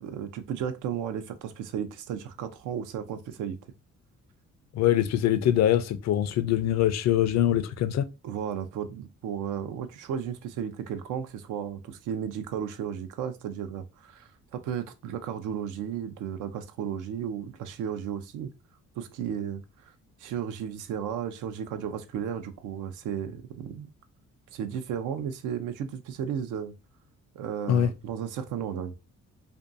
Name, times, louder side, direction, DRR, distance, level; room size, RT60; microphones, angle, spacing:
voice 1, 0.0-3.6 8.2-18.5 19.0-19.6 20.2-23.9 24.5-26.7 27.4-28.9, right 8 dB, 85° right, 0.5 m, -34 dB
voice 2, 4.7-8.1 27.7-27.9, left 11 dB, 60° left, 0.4 m, -23 dB
2.6 x 2.2 x 2.5 m
cardioid pair, 90°, 30 cm